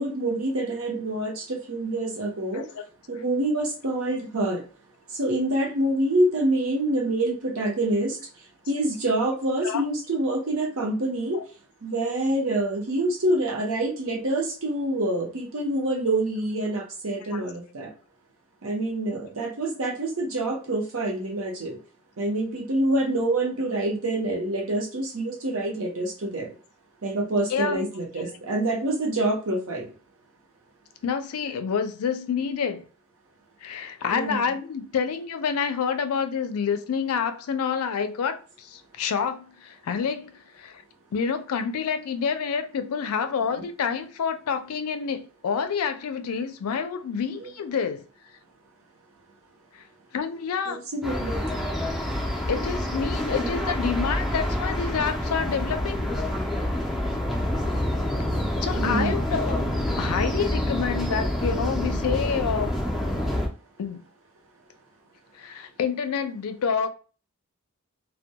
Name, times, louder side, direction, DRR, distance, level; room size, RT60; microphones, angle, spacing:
voice 1, 0.0-2.7 3.1-4.6 5.1-8.2 8.7-11.4 11.8-17.9 18.6-21.8 22.2-26.5 27.0-29.9 34.1-34.4 47.4-47.5 50.7-51.4 58.7-59.2, right 1 dB, 65° right, 0.7 m, -26 dB
voice 2, 27.5-27.9 31.0-32.8 33.6-40.8 41.1-48.0 49.7-49.8 50.1-50.8 52.5-56.1 58.6-59.7 60.0-62.7 63.8-64.0 65.3-66.9, left 6 dB, 80° left, 0.4 m, -28 dB
sound 1, 51.0-63.5, left 1 dB, ahead, 0.4 m, -27 dB
2.2 x 2.1 x 2.7 m
head